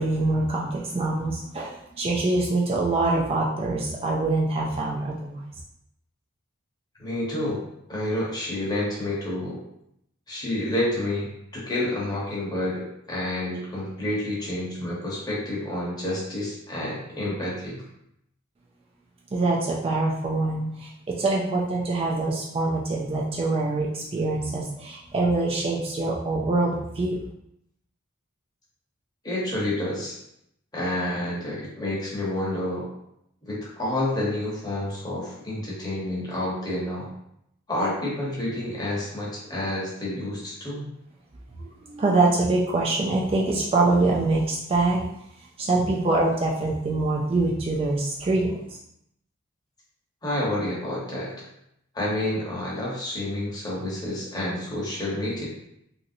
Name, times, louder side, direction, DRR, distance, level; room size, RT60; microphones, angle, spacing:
voice 1, 0.0-5.4 19.3-27.2 41.6-45.1 45.6-48.8, right 2 dB, 30° right, -3 dB, 0.3 m, -24 dB
voice 2, 7.0-7.6 7.9-9.6 10.3-11.3 11.5-17.8 29.2-30.2 30.7-32.9 33.4-37.1 37.7-40.9 50.2-51.3 51.9-55.5, left 1 dB, 20° left, -6 dB, 0.9 m, -29 dB
2.9 x 2.6 x 2.6 m, 0.78 s
head